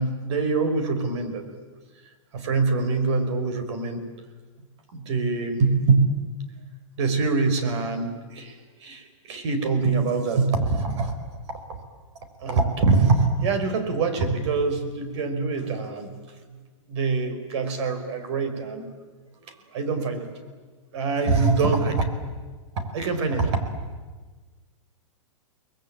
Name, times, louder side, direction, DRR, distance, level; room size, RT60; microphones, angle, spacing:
voice 1, 0.0-1.4 2.3-4.0 4.9-6.1 7.0-11.2 11.7-11.8 12.4-16.4 16.9-18.9 19.5-20.3 20.9-22.1 22.8-23.6, right 4 dB, 60° right, 8 dB, 5.2 m, -24 dB
29.5 x 21.0 x 9.0 m, 1.4 s
hypercardioid pair, 150°, 17 cm